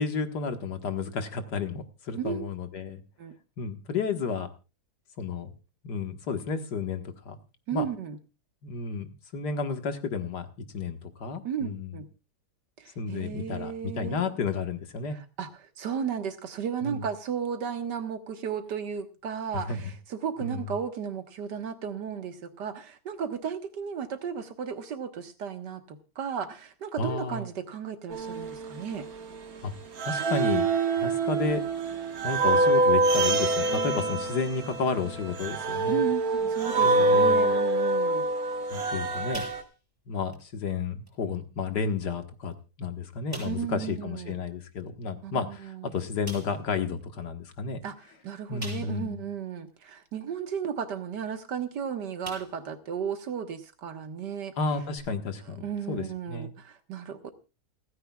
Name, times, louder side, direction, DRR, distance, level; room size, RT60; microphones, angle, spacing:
voice 1, 0.0-3.0 3.6-4.5 5.2-5.5 5.8-7.4 7.7-7.9 8.6-12.0 13.0-15.2 16.8-17.0 19.5-19.8 20.4-20.6 27.0-27.5 29.6-29.7 30.0-30.6 30.9-31.6 32.2-36.1 36.8-37.6 38.7-39.5 40.1-47.8 48.5-49.2 54.6-56.5, left 5 dB, 75° left, 8 dB, 2.1 m, -32 dB
voice 2, 7.7-8.2 11.4-12.1 12.8-14.3 15.4-29.1 35.9-38.3 43.4-44.4 45.2-45.9 47.8-48.0 48.2-54.5 55.6-57.3, right 7 dB, 80° right, 8 dB, 2.0 m, -34 dB
sound 1, 28.1-29.6 30.0-39.6, right 2 dB, 60° right, 1.9 m, -26 dB
sound 2, 39.3-40.0 40.3-40.5 41.1-41.2 42.0-42.1 42.5-42.6 43.3-43.7 45.4-45.5 46.2-46.6 48.6-49.2 49.7-49.8 51.6-51.8 52.2-52.7 53.2-53.3 54.9-55.0, right 1 dB, 10° right, 7.0 m, -43 dB
29.0 x 9.8 x 2.3 m, 0.31 s
omnidirectional pair, 1.8 m